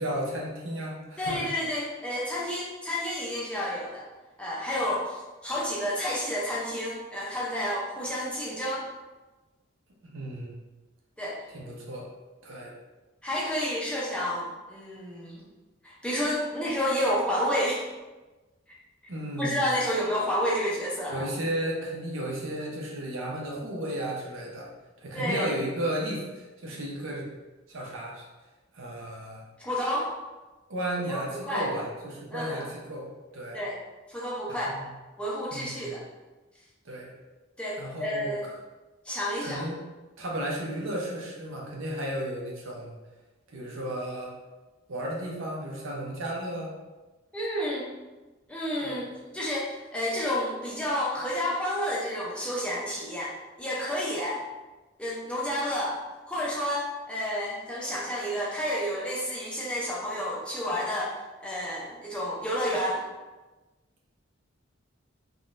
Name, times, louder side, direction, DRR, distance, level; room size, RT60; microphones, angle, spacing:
voice 1, 0.0-1.4 10.0-10.6 11.5-12.1 12.4-12.7 19.1-19.7 21.1-24.7 25.0-27.3 27.7-28.3 28.7-29.4 30.7-33.6 34.5-34.9 35.5-36.0 36.8-37.1 37.8-38.3 39.4-39.8 40.2-43.0 43.5-44.4 44.9-46.7 48.8-49.1, right 1 dB, 75° right, -2 dB, 0.7 m, -34 dB
voice 2, 1.2-4.1 4.4-8.9 11.2-11.4 13.2-15.4 15.8-17.8 19.4-21.2 25.1-25.5 29.6-30.1 31.1-31.7 32.3-32.7 33.5-33.8 34.1-34.7 35.2-36.0 37.6-38.4 39.0-39.6 47.3-47.9 48.5-49.1 49.3-54.4 55.0-56.0 56.3-63.0, equal, 5° left, -6 dB, 0.5 m, -30 dB
3.6 x 2.2 x 2.5 m, 1.2 s
head